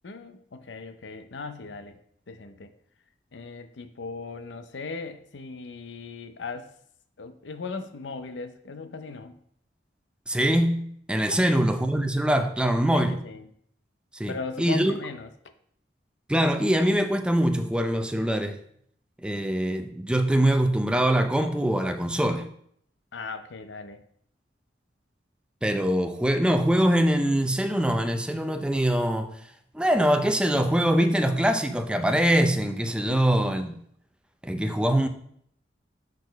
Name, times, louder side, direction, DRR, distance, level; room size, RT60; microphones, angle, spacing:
voice 1, 0.0-2.0 2.3-2.7 3.3-6.7 7.2-9.4 11.3-11.6 12.9-13.5 14.3-15.3 23.1-24.0 33.1-33.8, left 4 dB, 90° left, 10 dB, 0.6 m, -38 dB
voice 2, 10.3-13.1 14.2-14.9 16.3-18.6 19.2-22.4 25.6-29.3 29.7-33.7 34.4-35.1, right 1 dB, 5° right, 7 dB, 0.5 m, -23 dB
6.4 x 4.2 x 5.2 m, 0.67 s
head